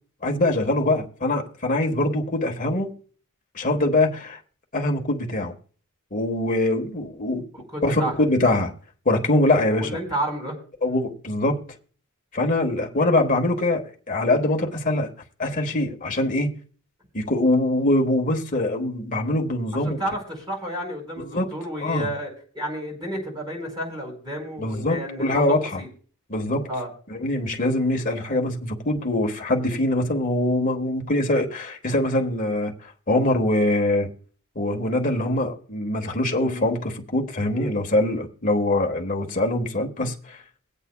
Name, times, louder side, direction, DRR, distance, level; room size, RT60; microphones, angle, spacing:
voice 1, 0.2-2.9 3.5-4.4 4.7-5.5 6.1-7.4 7.8-8.7 9.0-9.9 10.8-11.6 12.3-15.1 15.4-16.5 17.1-20.0 21.2-21.5 21.8-22.1 24.6-25.8 26.3-26.7 27.1-34.1 34.5-40.4, left 1 dB, 35° left, 1.4 m, -23 dB
voice 2, 7.5-8.1 9.7-10.5 19.8-25.4 25.8-25.9 26.7-26.9 36.4-36.7 37.5-37.7, equal, 20° right, 4.8 m, -31 dB
23.5 x 8.2 x 2.2 m
head